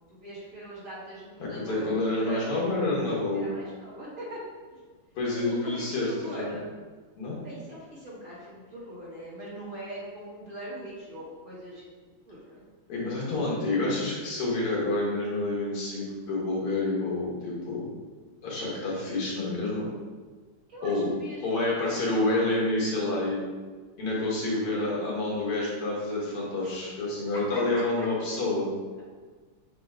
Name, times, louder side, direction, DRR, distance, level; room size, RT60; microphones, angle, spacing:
voice 1, 0.0-2.6 3.3-4.4 4.7-4.8 5.3-6.7 7.4-11.8 12.3-12.6 13.3-13.5 20.7-21.4 21.7-21.9 26.6-26.7 27.3-28.1, right 1 dB, 40° right, -8 dB, 2.0 m, -42 dB
voice 2, 1.4-3.5 5.2-6.6 7.2-7.4 12.9-17.9 18.4-19.9 20.8-21.1 21.4-23.4 24.0-28.7, left 2 dB, 85° left, -5 dB, 2.5 m, -28 dB
7.9 x 3.2 x 3.7 m, 1.4 s
omnidirectional pair, 2.4 m